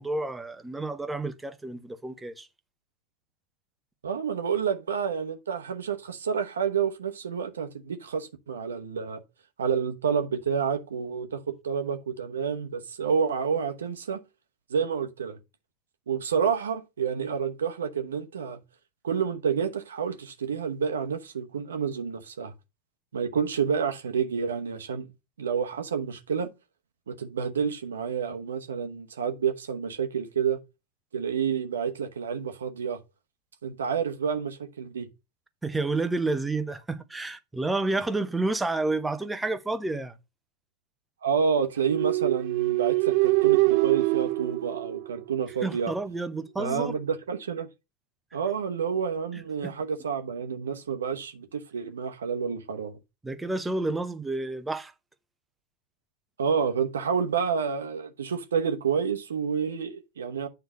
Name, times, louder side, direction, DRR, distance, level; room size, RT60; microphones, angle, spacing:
voice 1, 0.0-2.5 35.6-40.1 45.6-47.0 49.6-49.7 53.2-54.9, right 2 dB, 10° right, 0.7 m, -30 dB
voice 2, 4.0-9.2 9.6-14.2 14.7-15.4 16.1-18.6 19.0-22.5 23.1-25.1 25.4-26.5 27.1-30.6 31.1-33.0 33.6-35.1 41.2-45.9 46.6-47.7 48.3-53.0 56.4-60.5, right 6 dB, 65° right, 1.0 m, -29 dB
sound 1, 41.8-45.6, right 24 dB, 45° right, 0.4 m, -24 dB
9.0 x 3.3 x 5.3 m
figure-of-eight pair, 90°, 0 cm